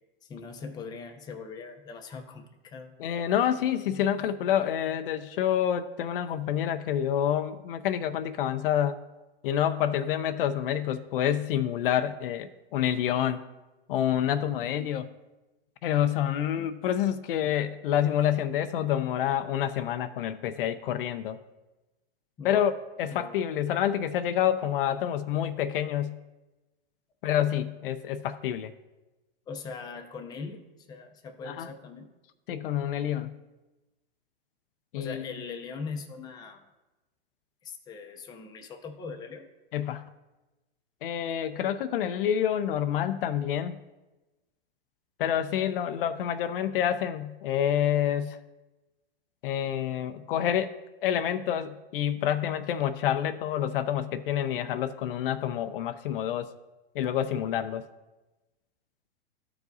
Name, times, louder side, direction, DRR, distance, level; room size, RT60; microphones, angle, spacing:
voice 1, 0.2-2.9 22.4-22.7 23.1-23.4 29.5-32.1 34.9-36.6 37.6-39.5, left 4 dB, 15° left, 4 dB, 0.6 m, -41 dB
voice 2, 3.0-9.0 9.4-13.4 13.9-15.1 15.8-21.4 22.4-22.7 23.0-26.2 27.2-28.7 31.5-31.7 32.5-33.3 34.9-35.3 39.7-40.0 41.0-43.8 45.2-48.4 49.4-50.7 51.0-56.5 56.9-57.8, left 10 dB, 60° left, 11 dB, 0.5 m, -28 dB
13.5 x 4.8 x 2.6 m, 1.1 s
hypercardioid pair, 140°, 31 cm